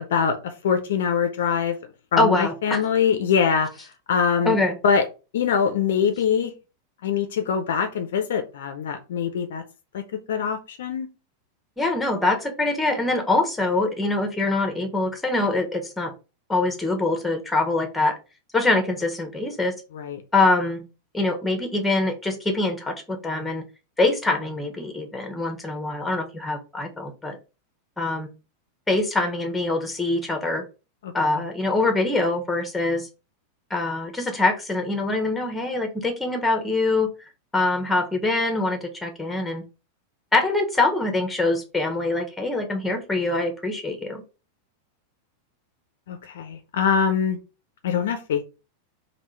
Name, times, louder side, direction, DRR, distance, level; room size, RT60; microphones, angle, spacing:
voice 1, 0.1-1.8 2.1-3.7 4.1-4.6 4.8-5.0 5.3-6.5 7.0-9.6 9.9-10.0 10.3-11.1 19.9-20.2 31.0-31.4 46.1-47.4 47.8-48.4, left 7 dB, 60° left, 7 dB, 0.6 m, -23 dB
voice 2, 2.2-2.8 4.4-4.7 11.8-16.1 16.5-18.1 18.5-19.7 20.3-20.8 21.1-23.6 24.0-27.4 28.0-28.3 28.9-30.6 31.1-33.1 33.7-37.1 37.5-39.6 40.3-44.2, left 2 dB, 5° left, 5 dB, 1.0 m, -24 dB
3.6 x 2.4 x 4.5 m, 0.30 s
figure-of-eight pair, 90°, 0 cm